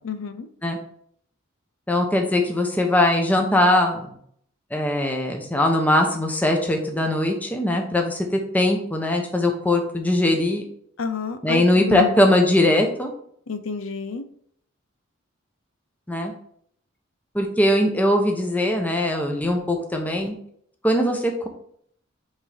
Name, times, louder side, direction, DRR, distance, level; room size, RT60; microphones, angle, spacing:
voice 1, 0.0-0.5 11.0-12.2 13.5-14.2, left 5 dB, 75° left, 9 dB, 0.6 m, -29 dB
voice 2, 1.9-4.1 4.7-10.6 11.4-13.1 16.1-16.3 17.3-20.3 20.8-21.5, left 1 dB, 10° left, 2 dB, 0.9 m, -21 dB
8.0 x 3.7 x 3.4 m, 0.64 s
head